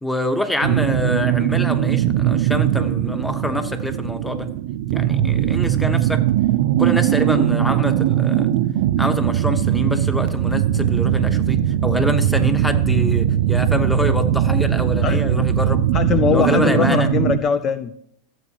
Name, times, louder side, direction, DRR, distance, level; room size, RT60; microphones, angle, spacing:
voice 1, 0.0-4.5 4.9-6.2 6.8-8.5 9.0-15.8 16.3-17.1, left 1 dB, 5° left, 9 dB, 1.0 m, -25 dB
sound 1, 0.6-17.4, right 11 dB, 70° right, 0.5 m, -20 dB
voice 2, 15.9-18.1, left 8 dB, 35° left, 12 dB, 0.5 m, -22 dB
15.0 x 7.6 x 3.0 m, 0.69 s
hypercardioid pair, 105°, 0 cm